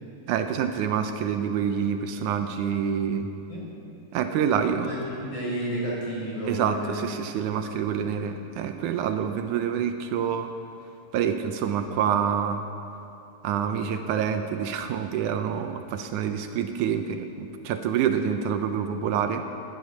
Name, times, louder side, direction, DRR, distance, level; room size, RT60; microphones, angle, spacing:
voice 1, 0.3-3.3 4.1-5.0 6.5-10.5 11.1-12.6 13.4-19.5, right 8 dB, 80° right, 7 dB, 2.1 m, -27 dB
voice 2, 4.8-7.3 7.7-7.8, equal, 40° left, -5 dB, 5.4 m, -32 dB
18.0 x 11.5 x 6.2 m, 2.6 s
omnidirectional pair, 3.6 m